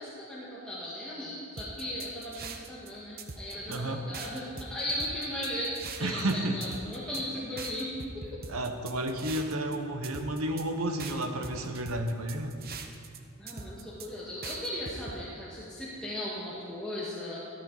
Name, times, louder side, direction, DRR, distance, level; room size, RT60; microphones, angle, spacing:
voice 1, 0.0-8.4 13.4-17.4, left 1 dB, 5° left, -9 dB, 1.7 m, -37 dB
sound 1, 1.6-2.9 3.2-3.8 4.1-6.3 6.6-7.2 7.6-9.8 10.0-10.6 11.0-13.2 13.5-14.1 14.4-15.2, right 5 dB, 45° right, 0.9 m, -42 dB
voice 2, 3.7-4.1 6.0-6.6 8.5-12.5, right 1 dB, 70° right, 5 dB, 1.2 m, -31 dB
13.0 x 13.0 x 4.1 m, 2.6 s
head